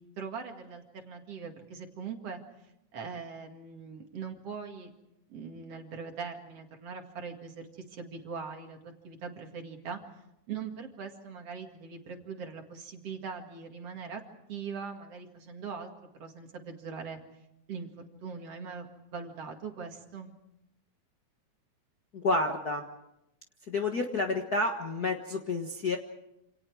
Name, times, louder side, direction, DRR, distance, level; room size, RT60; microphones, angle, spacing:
voice 1, 0.2-2.4 2.9-4.9 5.3-10.0 10.5-14.2 14.5-15.9 16.2-17.2 17.7-18.9 19.1-20.3, right 5 dB, 55° right, 4 dB, 3.0 m, -41 dB
voice 2, 22.1-22.8 23.7-26.0, left 2 dB, 40° left, 3 dB, 1.5 m, -29 dB
27.5 x 27.5 x 4.8 m, 0.85 s
omnidirectional pair, 3.5 m